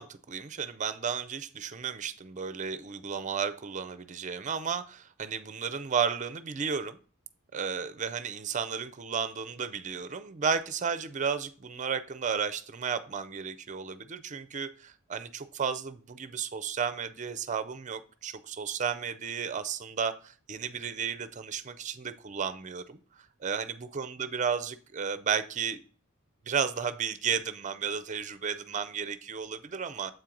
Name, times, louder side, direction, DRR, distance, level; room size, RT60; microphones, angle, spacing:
voice 1, 0.0-7.0 7.5-25.8 26.5-30.1, right 6 dB, 35° right, 13 dB, 0.5 m, -33 dB
7.7 x 4.5 x 3.7 m, 0.41 s
head